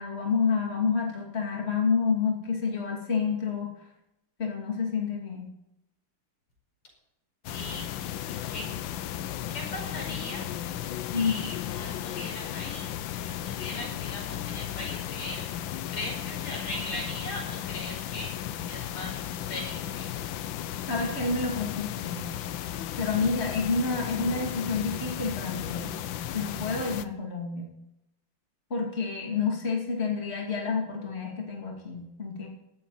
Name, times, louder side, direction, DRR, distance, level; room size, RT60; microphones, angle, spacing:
voice 1, 0.0-3.7 4.4-5.5 11.1-11.4 20.9-22.2 23.0-25.9 26.3-27.7 28.7-32.5, left 5 dB, 30° left, 0 dB, 3.0 m, -29 dB
sound 1, 7.4-27.0, left 11 dB, 70° left, 1.4 m, -35 dB
voice 2, 7.5-7.8 8.3-8.7 9.5-10.5 11.0-12.9 13.1-18.3 18.7-20.3, left 1 dB, 90° left, -1 dB, 6.2 m, -39 dB
16.5 x 12.5 x 4.2 m, 0.84 s
omnidirectional pair, 2.4 m